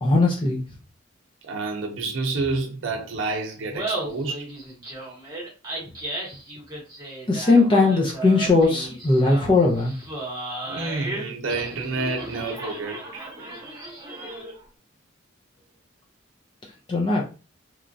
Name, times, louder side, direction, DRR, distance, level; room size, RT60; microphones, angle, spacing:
voice 1, 0.0-0.6 7.3-9.9 16.9-17.2, left 3 dB, 25° left, 0.5 m, -19 dB
voice 2, 1.4-4.5 10.7-13.3, right 3 dB, 75° right, 0.5 m, -29 dB
Laughter, 3.6-14.6, right 1 dB, 20° right, 1.0 m, -35 dB
3.0 x 2.4 x 2.5 m
head